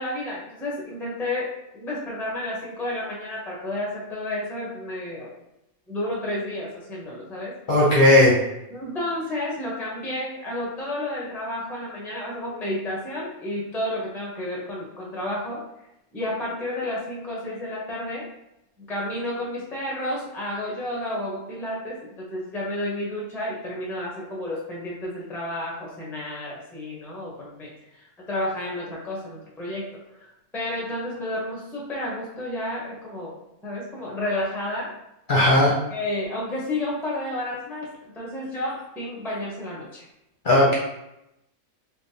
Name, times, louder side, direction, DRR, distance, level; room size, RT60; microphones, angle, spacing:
voice 1, 0.0-5.3 5.9-7.5 8.7-15.6 16.1-18.3 18.9-27.7 28.3-29.9 30.2-33.3 33.6-34.9 35.9-40.0, left 1 dB, ahead, -4 dB, 0.5 m, -31 dB
voice 2, 7.7-8.3 35.3-35.7 40.4-40.7, left 1 dB, 45° left, -5 dB, 0.7 m, -16 dB
3.3 x 2.9 x 2.7 m, 0.86 s
omnidirectional pair, 1.5 m